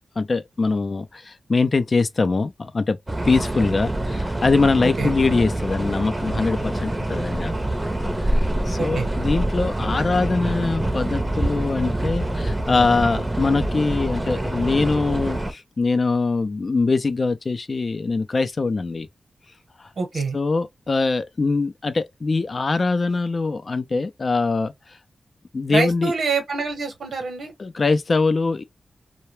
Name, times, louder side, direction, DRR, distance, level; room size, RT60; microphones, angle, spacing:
voice 1, 0.2-3.0 3.2-7.5 8.2-8.4 8.7-19.1 20.3-24.7 25.5-26.1 27.6-28.6, left 3 dB, 50° left, 0.4 m, -22 dB
sound 1, 3.1-15.5, right 1 dB, 20° right, 0.6 m, -25 dB
voice 2, 8.8-9.1 20.0-20.4 25.7-27.5, right 4 dB, 80° right, 0.9 m, -25 dB
2.2 x 2.1 x 3.0 m
cardioid pair, 60°, 0 cm